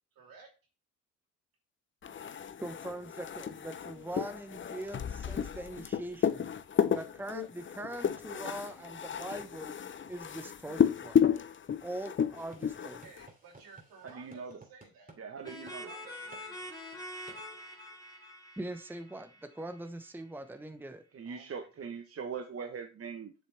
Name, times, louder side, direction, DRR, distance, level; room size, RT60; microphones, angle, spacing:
voice 1, 0.1-0.5 12.8-15.2 15.6-16.8 21.2-22.0, right 4 dB, 70° right, 1 dB, 2.9 m, -56 dB
sound 1, 2.0-13.3, left 8 dB, 30° left, 0.6 m, -32 dB
voice 2, 2.6-6.4 6.9-9.7 10.1-11.3 11.8-13.0 18.6-21.0, right 1 dB, 5° right, 9 dB, 1.0 m, -42 dB
sound 2, 12.3-15.2 15.5-15.8 16.3-16.5 17.3-17.4, right 2 dB, 25° right, 2.6 m, -56 dB
voice 3, 14.0-14.6 15.2-15.9 21.1-23.3, right 6 dB, 40° right, 6 dB, 1.0 m, -41 dB
sound 3, 15.4-20.0, left 1 dB, 10° left, 2.5 m, -45 dB
7.8 x 6.6 x 3.3 m, 0.33 s
supercardioid pair, 55°, 37 cm